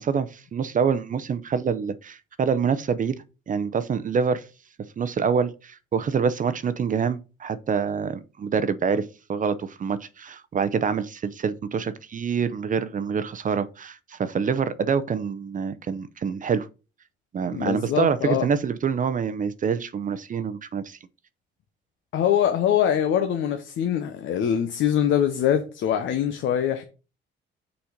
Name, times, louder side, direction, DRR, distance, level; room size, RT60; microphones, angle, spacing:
voice 1, 0.0-3.2 3.5-4.4 5.0-16.7 17.3-21.0, right 6 dB, 40° right, 0.6 m, -26 dB
voice 2, 17.5-18.5 22.1-26.8, left 9 dB, 75° left, 0.8 m, -23 dB
5.7 x 4.2 x 5.0 m
cardioid pair, 90°, 20 cm